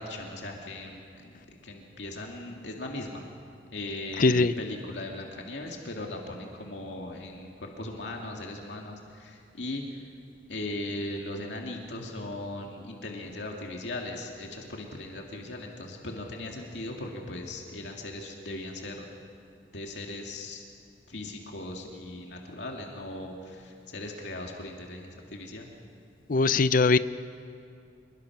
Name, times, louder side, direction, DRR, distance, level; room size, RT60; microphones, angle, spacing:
voice 1, 0.0-3.2 3.7-9.8 10.5-19.1 19.7-20.6 21.1-25.7, left 2 dB, 80° left, 0 dB, 2.4 m, -38 dB
voice 2, 4.2-4.5 26.3-27.0, left 3 dB, 50° left, 14 dB, 0.5 m, -21 dB
26.0 x 22.5 x 6.0 m, 2.5 s
head